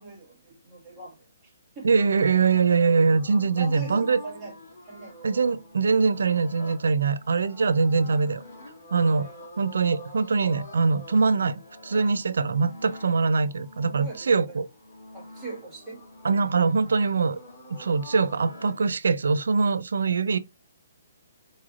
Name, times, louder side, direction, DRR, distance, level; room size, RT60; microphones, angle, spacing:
voice 1, 0.0-1.9 3.5-4.6 4.8-5.2 9.0-9.4 13.9-14.6 15.1-16.1, right 2 dB, 10° right, 1.5 m, -42 dB
voice 2, 1.8-4.2 5.2-8.4 8.9-9.3 9.6-14.7 16.2-17.4 17.8-20.4, right 4 dB, 85° right, 0.5 m, -23 dB
sound 1, 2.0-18.9, left 1 dB, 55° left, 1.8 m, -46 dB
4.2 x 3.2 x 2.4 m
hypercardioid pair, 165°, 0 cm